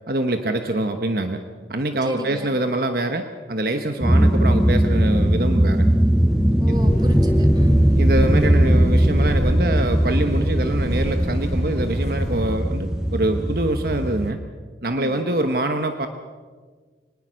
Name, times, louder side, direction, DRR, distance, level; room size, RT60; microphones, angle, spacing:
voice 1, 0.1-1.4 1.7-5.8 7.9-14.4 14.8-16.1, right 1 dB, 55° right, 7 dB, 1.1 m, -24 dB
voice 2, 2.0-2.5 6.6-7.9 14.9-15.2, right 1 dB, 25° right, 5 dB, 2.2 m, -32 dB
sound 1, 4.0-14.3, equal, 5° right, 0.8 m, -19 dB
sound 2, 6.7-12.7, equal, 40° left, 4.7 m, -32 dB
25.0 x 19.5 x 6.4 m, 1.5 s
head